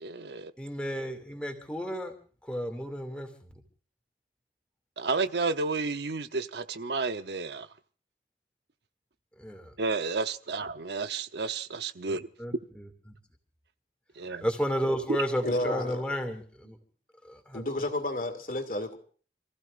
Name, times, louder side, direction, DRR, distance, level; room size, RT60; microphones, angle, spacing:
voice 1, 0.0-0.5 5.0-7.7 9.8-12.3 14.2-14.5, right 4 dB, 75° right, 0.8 m, -31 dB
voice 2, 0.6-2.1 2.4-3.6 9.4-9.7 12.1-13.2 14.4-16.8 17.2-17.6, equal, 5° left, 2.4 m, -33 dB
voice 3, 15.4-16.1 17.5-19.0, left 1 dB, 50° left, 2.5 m, -31 dB
29.0 x 15.5 x 2.5 m
head